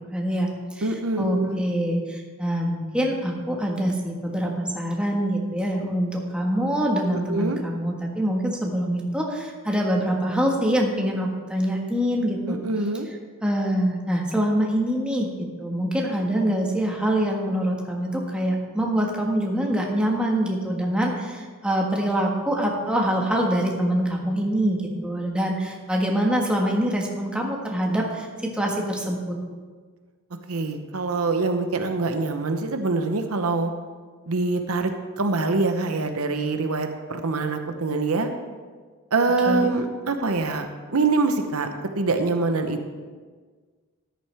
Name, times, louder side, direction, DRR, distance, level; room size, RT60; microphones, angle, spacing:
voice 1, 0.1-0.5 0.8-0.9 1.2-12.6 13.4-29.3 39.5-39.7, equal, 5° right, -1 dB, 1.5 m, -25 dB
voice 2, 0.8-1.6 7.1-7.6 12.5-13.1 30.5-33.7 34.3-38.3 39.1-40.7 40.9-42.9, right 3 dB, 75° right, 6 dB, 0.9 m, -24 dB
13.5 x 10.5 x 3.4 m, 1.5 s
head